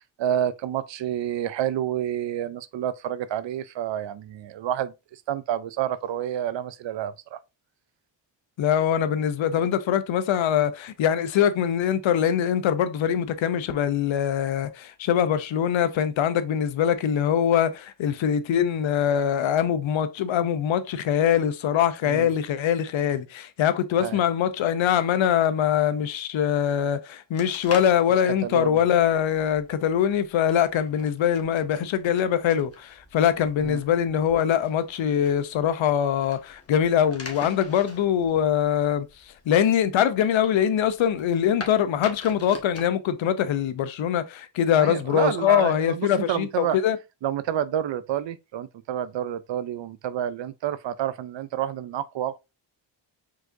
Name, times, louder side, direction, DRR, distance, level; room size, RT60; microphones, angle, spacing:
voice 1, 0.2-7.4 22.0-22.3 24.0-24.2 28.4-28.8 33.6-33.8 44.8-46.8 47.2-52.4, right 10 dB, 70° right, 0.6 m, -29 dB
voice 2, 8.6-39.1 39.5-47.0, left 9 dB, 80° left, 0.7 m, -23 dB
sound 1, 27.3-42.9, left 3 dB, 30° left, 1.3 m, -44 dB
4.7 x 4.1 x 2.6 m
cardioid pair, 60°, 46 cm